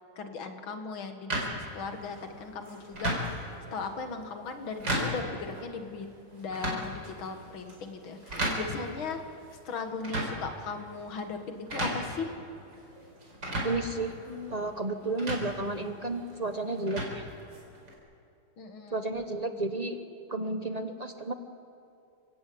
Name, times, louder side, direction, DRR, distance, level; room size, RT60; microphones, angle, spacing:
voice 1, 0.2-3.3 3.7-6.1 6.3-9.2 9.7-12.3 18.6-19.1, left 4 dB, 70° left, 6 dB, 2.5 m, -38 dB
sound 1, 1.3-17.9, right 1 dB, 55° right, 5.2 m, -37 dB
voice 2, 13.6-14.1 14.5-17.2 18.9-20.0 20.3-21.3, right 2 dB, 35° right, 7 dB, 0.6 m, -32 dB
29.0 x 16.5 x 8.6 m, 2.5 s
omnidirectional pair, 2.3 m